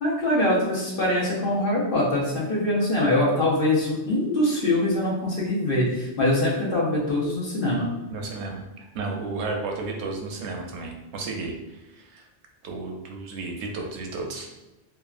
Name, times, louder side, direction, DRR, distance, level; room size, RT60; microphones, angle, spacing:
voice 1, 0.0-7.9, left 1 dB, 60° left, -5 dB, 1.0 m, -23 dB
voice 2, 8.1-12.3 12.6-14.5, right 3 dB, 90° right, 1 dB, 0.9 m, -33 dB
2.8 x 2.3 x 2.4 m, 0.98 s
omnidirectional pair, 1.1 m